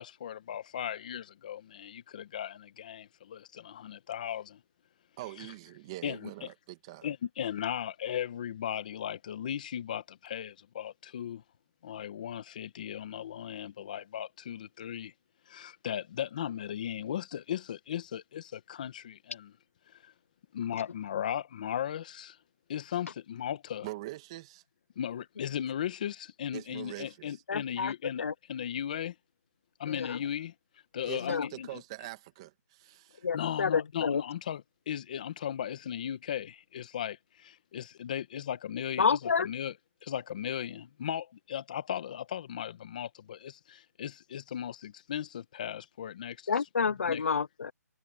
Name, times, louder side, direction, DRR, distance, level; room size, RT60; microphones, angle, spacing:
voice 1, 0.0-4.6 5.4-5.5 6.0-6.3 7.0-11.4 11.8-15.1 15.5-19.5 19.9-20.1 20.5-22.4 22.7-23.9 25.0-28.2 28.5-29.2 29.8-30.5 30.9-31.8 33.3-39.7 40.0-46.5 47.0-47.2, left 9 dB, 25° left, 1.7 m, -37 dB
voice 2, 5.2-7.1 23.8-24.6 26.5-27.4 31.0-33.3, right 18 dB, 20° right, 1.9 m, -43 dB
voice 3, 27.5-27.9 28.2-28.3 29.9-30.2 31.3-31.5 33.2-34.2 39.0-39.5 46.5-47.7, left 5 dB, 50° left, 0.6 m, -29 dB
hypercardioid pair, 175°, 9 cm